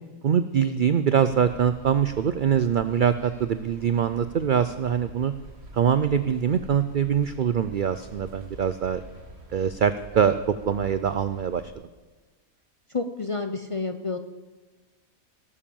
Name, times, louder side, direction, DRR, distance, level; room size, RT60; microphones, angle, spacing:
voice 1, 0.2-5.3 5.7-9.0 9.5-10.3 10.6-11.6, right 8 dB, 80° right, 12 dB, 0.4 m, -23 dB
sound 1, 1.2-11.7, right 2 dB, 45° right, 2.2 m, -46 dB
voice 2, 12.9-14.2, left 3 dB, 35° left, 7 dB, 0.5 m, -29 dB
18.5 x 7.4 x 7.0 m, 1.3 s
omnidirectional pair, 1.5 m